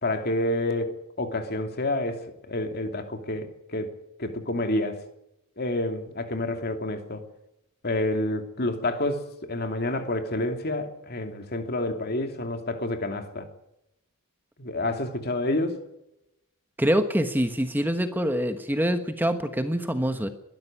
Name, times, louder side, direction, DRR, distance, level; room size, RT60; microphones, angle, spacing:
voice 1, 0.0-3.9 4.2-5.0 5.6-7.2 7.8-13.5 14.6-15.8, left 1 dB, 45° left, 2.7 m, -29 dB
voice 2, 16.8-20.3, equal, 10° right, 1.2 m, -25 dB
21.5 x 13.0 x 10.0 m
head